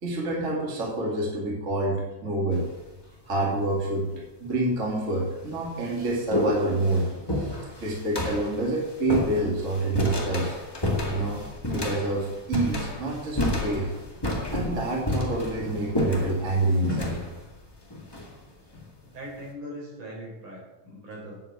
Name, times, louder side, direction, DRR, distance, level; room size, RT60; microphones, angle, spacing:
voice 1, 0.0-2.7 3.2-7.1 7.4-10.5 11.1-11.4 11.7-13.9 14.5-17.2, right 2 dB, 25° right, -2 dB, 2.4 m, -27 dB
sound 1, 2.5-3.0 3.9-4.0 4.8-4.9 5.3-18.9, left 1 dB, 10° left, 1.4 m, -31 dB
voice 2, 19.0-21.4, equal, 65° right, -3 dB, 5.7 m, -40 dB
9.4 x 7.9 x 8.3 m, 1.0 s
omnidirectional pair, 3.8 m